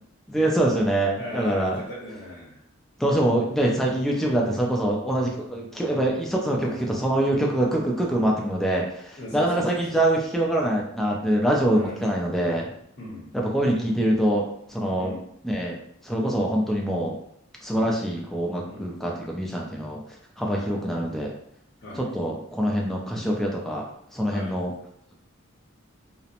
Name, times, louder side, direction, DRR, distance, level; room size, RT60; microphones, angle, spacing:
voice 1, 0.3-1.8 3.0-12.7 13.3-15.1 15.4-17.2 17.6-20.0 20.4-21.3 22.0-23.9 24.1-24.7, right 1 dB, ahead, -2 dB, 0.3 m, -24 dB
voice 2, 1.2-2.6 6.6-7.0 9.2-9.8 11.7-12.1 13.0-13.4 15.0-15.2 17.7-17.9 18.7-18.9 20.5-20.8 21.8-22.1 24.3-24.5, left 1 dB, 60° left, -7 dB, 0.8 m, -38 dB
2.8 x 2.0 x 2.4 m, 0.71 s
head